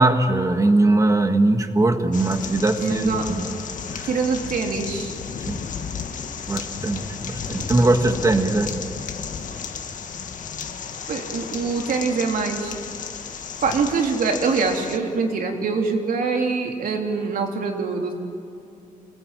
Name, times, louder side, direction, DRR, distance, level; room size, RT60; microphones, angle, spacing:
voice 1, 0.0-3.6 3.9-4.1 5.5-5.6 6.5-8.7, right 2 dB, 20° right, 6 dB, 1.6 m, -20 dB
sound 1, 2.1-15.0, left 6 dB, 65° left, 1.7 m, -33 dB
voice 2, 2.8-3.3 4.0-5.1 11.1-12.7 13.6-18.1, right 4 dB, 80° right, 2 dB, 3.4 m, -24 dB
28.5 x 21.0 x 9.1 m, 2.6 s
wide cardioid pair, 175°, 14 cm